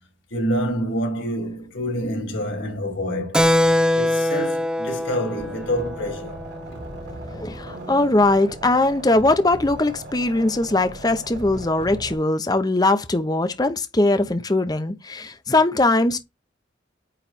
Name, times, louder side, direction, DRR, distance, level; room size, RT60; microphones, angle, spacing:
voice 1, 0.3-3.5 4.0-6.4, equal, 80° left, 3.5 m, -27 dB
Keyboard (musical), 3.3-7.4, left 1 dB, 5° right, 0.4 m, -23 dB
sound 1, 5.4-12.2, right 1 dB, 65° right, 4.2 m, -38 dB
voice 2, 7.4-16.2, left 2 dB, 20° left, 0.7 m, -20 dB
9.1 x 3.2 x 4.2 m
head